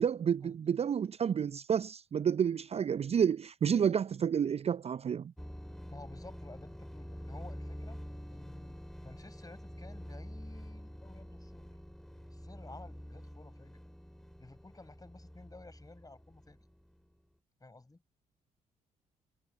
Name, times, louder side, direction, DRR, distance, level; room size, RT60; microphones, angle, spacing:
voice 1, 0.0-5.3, right 8 dB, 35° right, 0.6 m, -30 dB
sound 1, 5.4-17.0, equal, ahead, 2.7 m, -47 dB
voice 2, 5.9-8.0 8.3-11.7 12.3-13.8 14.4-16.7 17.6-18.0, left 2 dB, 20° left, 7.8 m, -53 dB
figure-of-eight pair, 40°, 18 cm